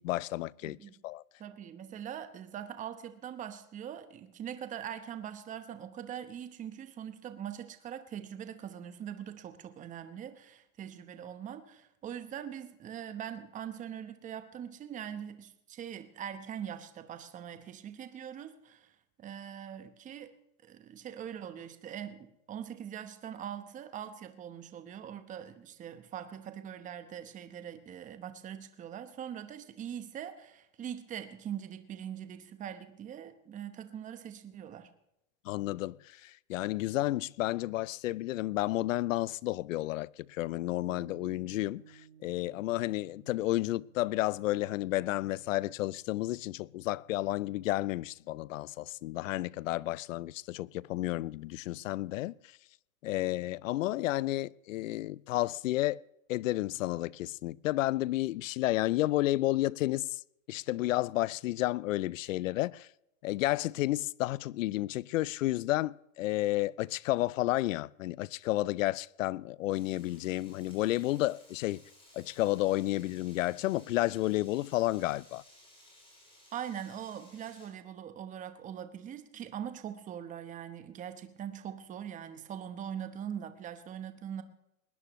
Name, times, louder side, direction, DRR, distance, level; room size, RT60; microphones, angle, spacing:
voice 1, 0.0-0.8 1.0-1.2 35.5-41.8 42.2-52.3 53.0-56.0 56.3-60.2 60.5-62.9 63.2-71.8 72.1-75.4, left 17 dB, 60° left, 0.5 m, -31 dB
voice 2, 0.6-0.9 1.4-18.9 19.2-20.3 20.6-34.9 76.5-84.4, right 9 dB, 15° right, 1.0 m, -42 dB
sound 1, 40.9-50.5, right 8 dB, 70° right, 1.5 m, -61 dB
Frying (food), 69.7-77.7, left 1 dB, 10° left, 6.5 m, -59 dB
20.5 x 19.5 x 3.1 m
hypercardioid pair, 140°, 44 cm